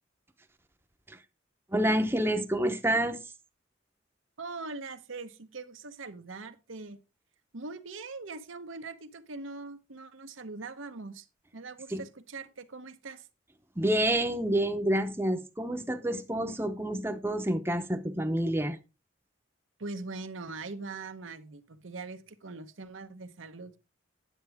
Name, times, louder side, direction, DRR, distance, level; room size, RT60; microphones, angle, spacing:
voice 1, 1.7-3.2 11.9-12.0 13.8-18.8, right 1 dB, 10° right, 0.7 m, -28 dB
voice 2, 4.4-7.0 7.5-11.3 11.5-13.3 19.8-23.8, right 3 dB, 85° right, 1.0 m, -42 dB
9.7 x 8.0 x 3.5 m
head